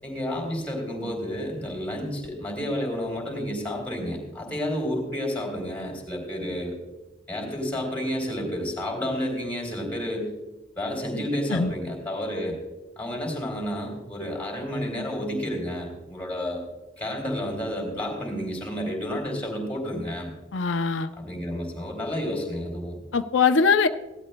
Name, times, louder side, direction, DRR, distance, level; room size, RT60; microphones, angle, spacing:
voice 1, 0.0-6.7 7.3-10.3 10.8-12.6 13.0-16.6 17.0-20.3 21.1-23.0, equal, 10° left, -1 dB, 3.5 m, -30 dB
voice 2, 20.5-21.1 23.1-23.9, left 5 dB, 90° left, 8 dB, 0.6 m, -21 dB
17.0 x 12.5 x 2.2 m, 1.1 s
head